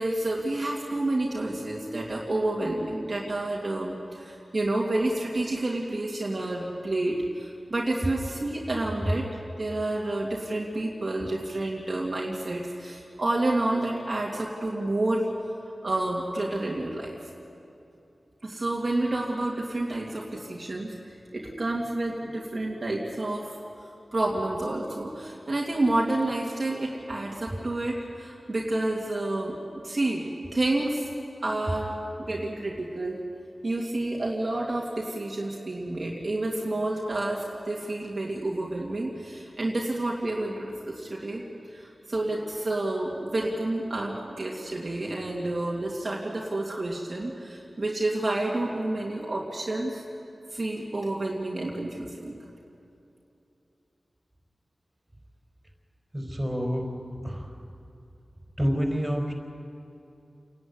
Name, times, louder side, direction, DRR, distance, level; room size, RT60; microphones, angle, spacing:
voice 1, 0.0-9.3 9.6-15.3 15.8-17.2 18.4-23.5 24.1-31.1 31.4-33.2 33.6-41.4 41.7-50.0 50.5-52.4, right 2 dB, 50° right, -3 dB, 2.5 m, -29 dB
voice 2, 56.1-56.9 57.2-57.5 58.6-59.3, equal, 15° right, 1 dB, 4.5 m, -28 dB
28.0 x 11.0 x 9.6 m, 2.8 s
cardioid pair, 50°, 0 cm